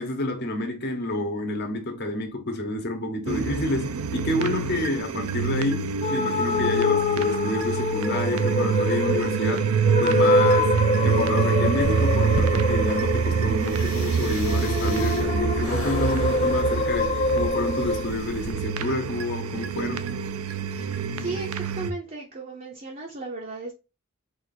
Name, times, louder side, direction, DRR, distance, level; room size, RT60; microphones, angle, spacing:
voice 1, 0.0-9.7 10.0-10.7 11.0-20.1, left 1 dB, 50° left, 1.0 m, -29 dB
sound 1, 3.3-21.9, right 6 dB, 80° right, 0.5 m, -26 dB
sound 2, 6.0-18.1, left 2 dB, 25° left, 0.4 m, -25 dB
sound 3, 11.8-18.5, left 3 dB, 70° left, 0.6 m, -38 dB
voice 2, 20.7-23.7, right 3 dB, 35° right, 0.6 m, -36 dB
4.1 x 2.5 x 4.2 m
head